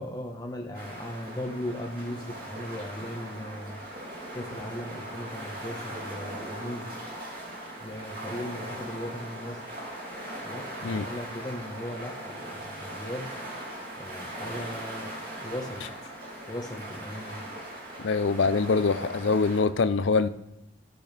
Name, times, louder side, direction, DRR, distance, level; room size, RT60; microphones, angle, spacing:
voice 1, 0.0-3.8 4.3-6.9 7.8-9.6 10.4-13.3 14.0-15.1 15.4-15.8 16.5-17.4, left 1 dB, 20° left, 1 dB, 1.2 m, -37 dB
sound 1, 0.7-19.6, right 1 dB, 50° right, 2.7 m, -39 dB
voice 2, 18.0-20.3, left 4 dB, 75° left, 13 dB, 0.5 m, -24 dB
15.0 x 6.3 x 3.4 m, 0.84 s
head